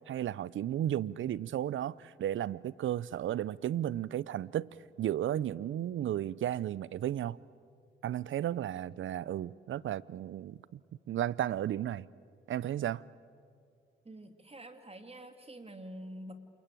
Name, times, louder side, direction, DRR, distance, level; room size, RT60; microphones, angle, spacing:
voice 1, 0.1-4.7 5.0-7.4 8.0-10.8 11.1-12.1 12.5-13.0, right 11 dB, 70° right, 0.6 m, -34 dB
voice 2, 14.0-16.3, right 1 dB, 30° right, 2.3 m, -47 dB
28.0 x 21.0 x 9.0 m
supercardioid pair, 55°, 21 cm